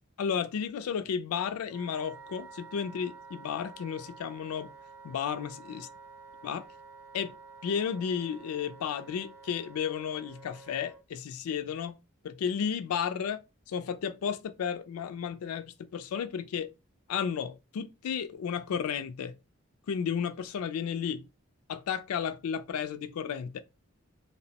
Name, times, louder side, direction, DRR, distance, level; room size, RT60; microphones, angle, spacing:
voice 1, 0.2-4.7 5.0-5.9 6.4-6.7 7.1-7.3 7.6-12.0 12.2-13.4 13.7-16.7 17.1-19.4 19.9-21.3 21.7-23.6, left 7 dB, 90° left, 0.3 m, -33 dB
Wind instrument woodwind instrument, 1.7-11.0, right 4 dB, 10° right, 0.3 m, -50 dB
2.8 x 2.0 x 2.7 m
head